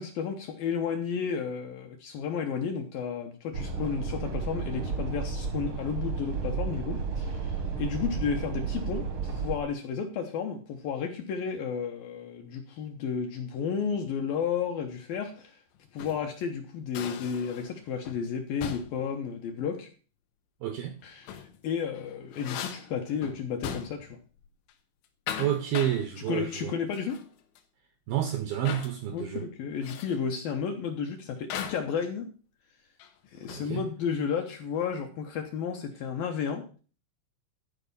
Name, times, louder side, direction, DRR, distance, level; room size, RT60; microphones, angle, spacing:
voice 1, 0.0-15.6 15.9-19.9 21.0-24.2 26.3-27.2 29.1-29.3 29.6-32.3 33.3-36.7, left 6 dB, 70° left, 2.3 m, -32 dB
sound 1, 3.5-9.6, right 5 dB, 60° right, 1.4 m, -32 dB
sound 2, 15.8-16.3 16.9-17.8 18.0-18.3 18.6-19.1 21.0-21.6 21.9-24.2 24.4-24.7 25.0-26.0 26.9-27.3 27.6-27.7 28.6-29.0 29.8-30.2 31.5-31.9 33.0-33.8, left 9 dB, 85° left, 3.5 m, -39 dB
voice 2, 20.6-21.0 25.4-26.7 28.1-29.5 33.5-33.8, right 11 dB, 75° right, 2.2 m, -29 dB
12.5 x 5.2 x 6.9 m
omnidirectional pair, 5.3 m